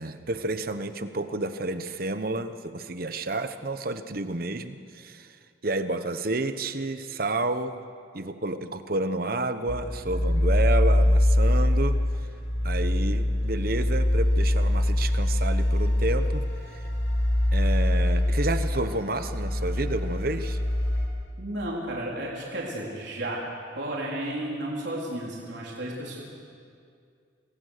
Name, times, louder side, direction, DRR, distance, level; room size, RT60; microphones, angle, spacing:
voice 1, 0.0-5.3 5.6-7.8 8.1-12.0 12.6-16.9 17.5-20.6, right 2 dB, 50° right, 10 dB, 1.0 m, -30 dB
sound 1, 9.7-21.1, left 1 dB, 60° left, 4.4 m, -24 dB
voice 2, 21.4-23.4 23.8-26.2, right 1 dB, 65° right, -4 dB, 4.0 m, -33 dB
26.5 x 20.0 x 6.7 m, 2.3 s
head